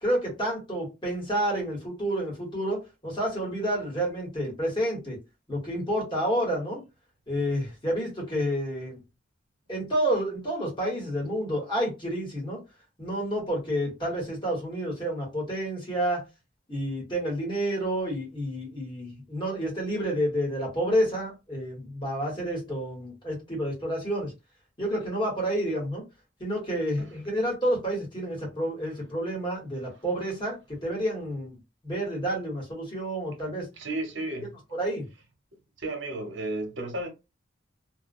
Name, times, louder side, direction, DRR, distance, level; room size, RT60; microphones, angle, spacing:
voice 1, 0.0-5.2 5.5-6.8 7.3-9.0 9.7-12.6 13.0-16.2 16.7-24.3 24.8-26.0 26.4-31.6 31.8-33.7 34.7-35.1, equal, 25° left, 1.2 m, -29 dB
voice 2, 33.8-34.5 35.8-37.1, right 2 dB, 75° right, 0.8 m, -33 dB
2.3 x 2.1 x 2.5 m
head